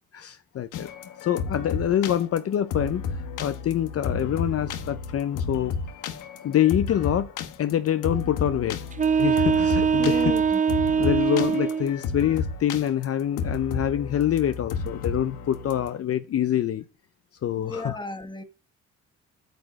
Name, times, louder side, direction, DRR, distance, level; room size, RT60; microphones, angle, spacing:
voice 1, 0.1-0.9 1.2-5.7 6.4-7.3 7.6-8.8 9.2-10.3 11.0-16.8 17.4-18.0, left 10 dB, 50° left, 0.7 m, -25 dB
sound 1, 0.7-16.0, left 5 dB, 90° left, 1.2 m, -32 dB
sound 2, 8.9-11.9, right 6 dB, 25° right, 0.8 m, -22 dB
voice 2, 10.0-10.6 17.6-18.4, left 2 dB, 15° left, 1.7 m, -34 dB
9.1 x 5.0 x 6.2 m
cardioid pair, 90°, 30 cm